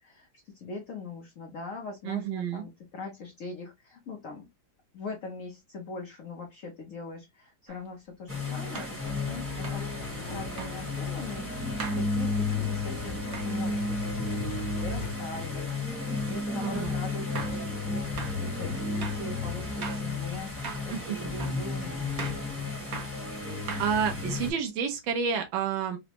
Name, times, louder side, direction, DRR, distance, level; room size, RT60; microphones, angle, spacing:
voice 1, 0.0-4.5 4.9-22.4, left 3 dB, 60° left, 0.8 m, -42 dB
voice 2, 2.0-2.6 16.6-16.9 20.9-21.2 23.8-26.0, right 7 dB, 80° right, 1.4 m, -29 dB
sound 1, 7.7-7.8 8.8-9.0 9.6-9.9 10.6-10.8 11.8-12.1 13.3-13.5 16.6-16.7 17.4-17.6 18.2-18.4 19.0-19.3 19.8-20.1 20.6-20.9 21.4-21.6 22.2-22.5 22.9-23.2 23.7-24.2, right 5 dB, 60° right, 0.7 m, -39 dB
sound 2, 8.3-24.5, left 3 dB, 10° right, 0.9 m, -33 dB
sound 3, 9.0-15.1, left 2 dB, 90° left, 1.5 m, -41 dB
3.9 x 2.1 x 2.8 m
omnidirectional pair, 2.1 m